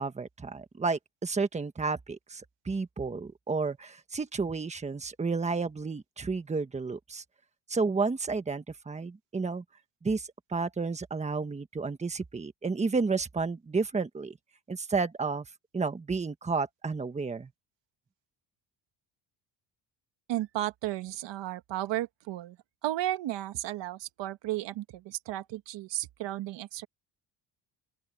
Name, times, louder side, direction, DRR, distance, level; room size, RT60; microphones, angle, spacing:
voice 1, 0.0-7.2 7.7-9.6 10.0-14.4 14.7-15.5 15.7-17.5, right 4 dB, 15° right, 1.3 m, -31 dB
voice 2, 20.3-22.6 22.8-26.9, right 14 dB, 70° right, 1.5 m, -34 dB
open air
cardioid pair, 145°, 44 cm